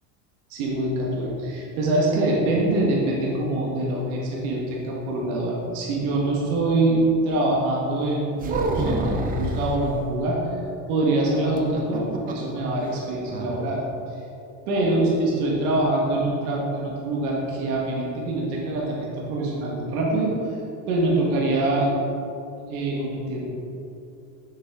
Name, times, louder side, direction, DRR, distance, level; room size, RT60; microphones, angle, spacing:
voice 1, 0.5-10.4 10.9-13.8 14.7-20.3 20.9-21.9 22.6-23.5, right 2 dB, 80° right, -4 dB, 1.8 m, -24 dB
sound 1, 8.4-9.8 11.6-12.5 12.8-12.9 13.3-13.6, right 2 dB, 20° right, 0.5 m, -27 dB
7.3 x 6.6 x 3.7 m, 2.8 s
cardioid pair, 140°, 43 cm